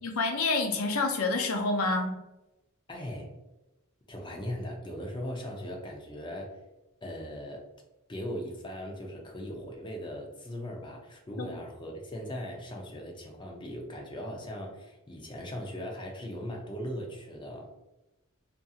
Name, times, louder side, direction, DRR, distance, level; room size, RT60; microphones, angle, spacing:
voice 1, 0.0-2.2 11.4-11.6, left 3 dB, 85° left, 3 dB, 0.5 m, -28 dB
voice 2, 2.9-3.3 4.1-6.5 7.0-7.6 8.1-17.7, equal, 20° left, 0 dB, 0.5 m, -39 dB
2.6 x 2.6 x 2.3 m, 0.99 s
head